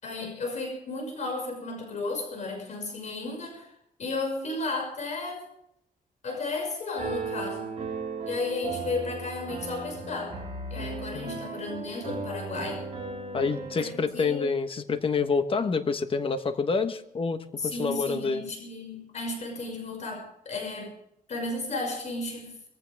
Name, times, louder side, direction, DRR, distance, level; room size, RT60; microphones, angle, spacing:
voice 1, 0.0-3.7 4.0-5.5 6.2-7.7 8.3-10.4 10.7-12.8 13.8-14.5 17.6-20.9 21.3-22.6, left 3 dB, 55° left, 1 dB, 6.2 m, -33 dB
Piano, 7.0-13.8, right 4 dB, 40° right, 7.3 m, -36 dB
voice 2, 13.3-18.4, left 4 dB, 35° left, 8 dB, 1.3 m, -27 dB
22.0 x 15.5 x 3.6 m, 0.76 s
wide cardioid pair, 145°, 15 cm